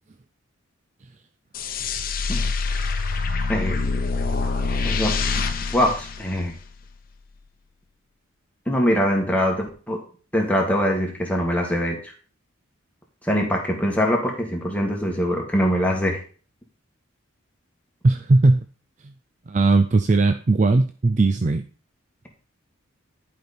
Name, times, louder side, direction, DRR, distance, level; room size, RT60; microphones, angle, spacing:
sound 1, 1.5-6.9, left 4 dB, 45° left, 0.9 m, -25 dB
voice 1, 4.8-5.1 5.7-6.5 8.7-10.0 10.3-12.1 13.2-16.2, equal, 5° left, 0 dB, 1.7 m, -23 dB
voice 2, 18.0-18.6 19.5-21.6, right 3 dB, 35° right, 9 dB, 0.4 m, -18 dB
11.0 x 5.3 x 4.3 m, 0.40 s
head